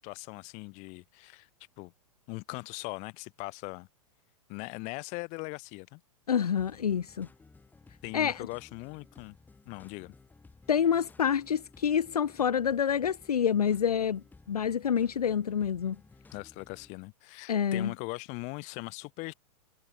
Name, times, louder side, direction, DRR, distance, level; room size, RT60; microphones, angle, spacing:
voice 1, 0.0-1.5 1.8-1.9 2.3-3.9 4.5-6.0 8.0-9.3 9.6-10.2 16.3-19.3, left 28 dB, 35° left, 1.2 m, -40 dB
voice 2, 6.3-7.3 8.1-8.5 10.7-16.0 17.5-17.9, left 8 dB, 75° left, 0.7 m, -27 dB
sound 1, 6.6-16.9, left 3 dB, 10° left, 2.8 m, -57 dB
figure-of-eight pair, 105°, 20 cm